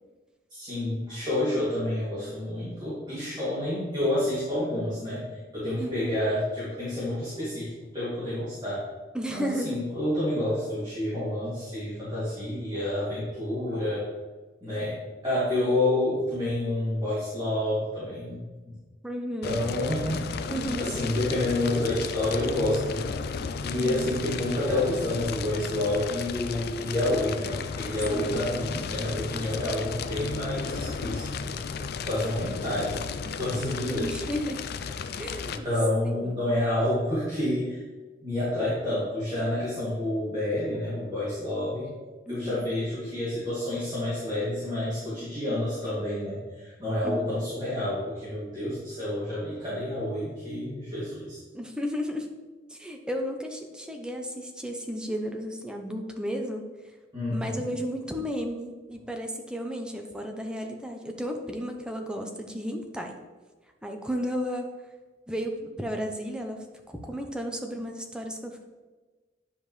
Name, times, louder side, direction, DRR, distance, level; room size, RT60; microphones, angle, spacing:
voice 1, 0.5-5.3 5.5-8.8 9.3-14.1 14.6-15.0 15.2-18.7 19.4-20.5 20.8-23.1 23.6-31.6 32.0-33.0 33.4-34.1 35.5-37.8 38.2-41.9 42.3-51.4 57.1-57.6, left 1 dB, 25° right, -11 dB, 2.5 m, -29 dB
voice 2, 5.8-6.2 9.1-9.8 19.0-19.6 20.5-20.9 23.7-24.1 28.1-28.4 33.9-34.6 35.2-35.7 36.0-36.4 42.3-42.6 47.0-47.3 51.5-52.3 52.7-56.7 57.3-63.2 63.8-64.7 65.3-68.6, equal, 5° right, 3 dB, 0.7 m, -33 dB
Fire, 19.4-35.6, left 5 dB, 55° left, 0.4 m, -34 dB
9.7 x 5.1 x 3.2 m, 1.3 s
head